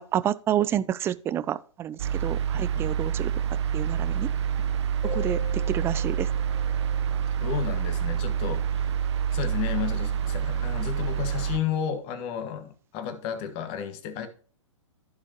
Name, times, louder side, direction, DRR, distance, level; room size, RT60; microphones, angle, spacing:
voice 1, 0.0-3.3 3.7-4.3 5.0-6.3, right 11 dB, 15° right, 0.3 m, -29 dB
sound 1, 2.0-11.6, right 8 dB, 60° right, 0.9 m, -27 dB
voice 2, 2.5-2.9 7.4-9.0 9.3-14.3, left 9 dB, 35° left, 1.6 m, -32 dB
sound 2, 5.0-8.3, left 8 dB, 15° left, 3.1 m, -43 dB
15.0 x 5.0 x 2.9 m
figure-of-eight pair, 115°, 16 cm